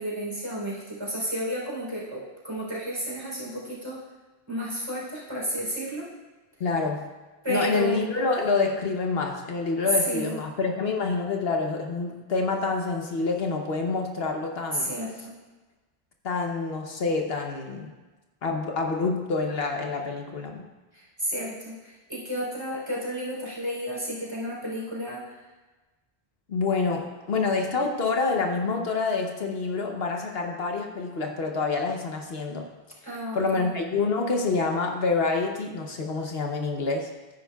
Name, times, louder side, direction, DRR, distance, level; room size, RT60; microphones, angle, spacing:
voice 1, 0.0-4.0 4.5-6.1 7.4-8.0 10.0-10.4 14.7-15.3 20.9-25.4 33.0-33.7, equal, 25° right, -6 dB, 3.6 m, -32 dB
voice 2, 6.6-7.1 7.5-14.9 16.2-17.9 18.4-20.6 26.5-32.7 33.3-37.1, left 4 dB, 70° left, 2 dB, 1.1 m, -27 dB
13.5 x 9.9 x 2.3 m, 1.2 s
omnidirectional pair, 1.1 m